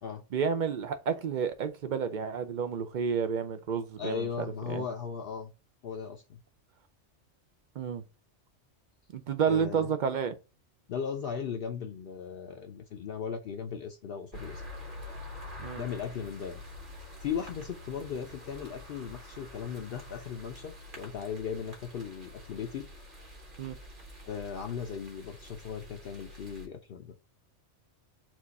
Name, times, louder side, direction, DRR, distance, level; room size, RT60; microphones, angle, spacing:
voice 1, 0.3-4.3 4.7-4.8 7.8-8.0 9.1-10.3 15.6-15.8 23.6-23.8, right 6 dB, 60° right, 0.5 m, -30 dB
voice 2, 4.0-5.5 5.8-6.4 9.4-9.9 10.9-14.6 15.8-16.6 17.2-22.9 24.3-27.1, left 7 dB, 60° left, 0.7 m, -37 dB
sound 1, 14.3-26.7, left 1 dB, 45° right, 1.4 m, -47 dB
4.6 x 2.4 x 4.0 m
omnidirectional pair, 1.2 m